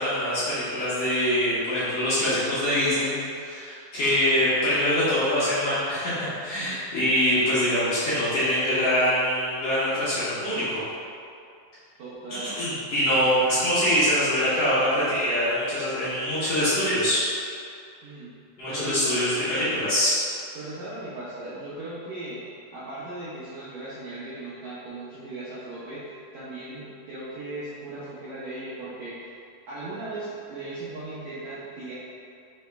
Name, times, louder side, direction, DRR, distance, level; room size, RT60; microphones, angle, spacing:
voice 1, 0.0-10.8 12.3-17.2 18.6-20.1, equal, 75° left, -12 dB, 1.4 m, -24 dB
voice 2, 12.0-12.5 13.0-13.2 18.0-18.3 18.7-19.0 20.5-22.4 22.7-29.1 29.7-31.9, right 2 dB, 75° right, -11 dB, 1.6 m, -37 dB
5.4 x 2.9 x 3.3 m, 2.4 s
omnidirectional pair, 4.1 m